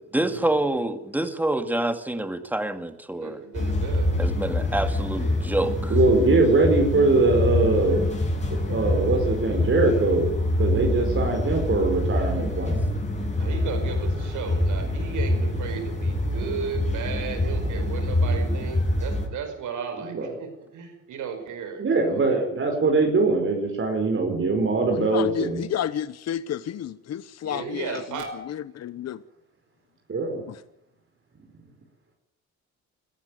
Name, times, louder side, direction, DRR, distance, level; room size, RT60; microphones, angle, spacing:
voice 1, 0.1-3.4 4.2-6.0, right 1 dB, 5° right, 2.3 m, -27 dB
voice 2, 3.2-4.2 13.4-22.3 27.4-28.3, right 6 dB, 80° right, 5.2 m, -35 dB
sound 1, 3.5-19.3, left 1 dB, 25° left, 7.6 m, -25 dB
voice 3, 5.9-8.0 8.5-10.3 10.6-12.8 20.0-20.3 21.8-25.6 30.1-30.4, right 3 dB, 45° right, 5.0 m, -22 dB
voice 4, 24.9-28.0 28.5-29.2 30.5-30.6, left 10 dB, 60° left, 0.9 m, -31 dB
21.5 x 14.5 x 9.2 m
cardioid pair, 90°, 30 cm